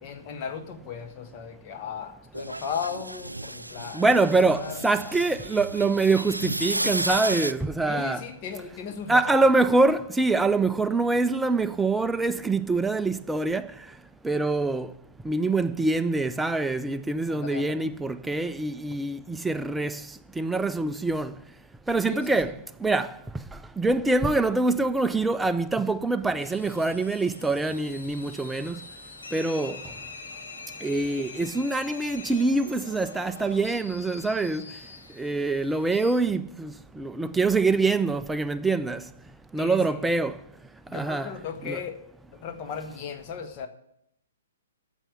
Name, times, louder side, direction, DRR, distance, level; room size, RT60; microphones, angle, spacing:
voice 1, 0.0-4.0 4.5-5.1 7.9-9.3 17.3-17.9 22.0-22.5 39.6-40.0 40.9-42.0 42.4-43.7, left 6 dB, 35° left, 1.1 m, -36 dB
sound 1, 2.3-7.5, right 1 dB, 85° right, 0.4 m, -32 dB
voice 2, 3.9-8.2 9.1-13.7 14.2-14.9 15.3-20.0 20.4-21.3 21.9-22.5 22.8-23.1 23.8-28.8 29.3-29.8 30.8-34.6 35.2-39.0 39.5-40.4 40.9-41.3 41.6-41.8, right 3 dB, 5° right, 0.4 m, -25 dB
sound 2, 26.4-36.2, left 4 dB, 65° left, 1.9 m, -44 dB
9.0 x 6.7 x 8.5 m
figure-of-eight pair, 120°, 0 cm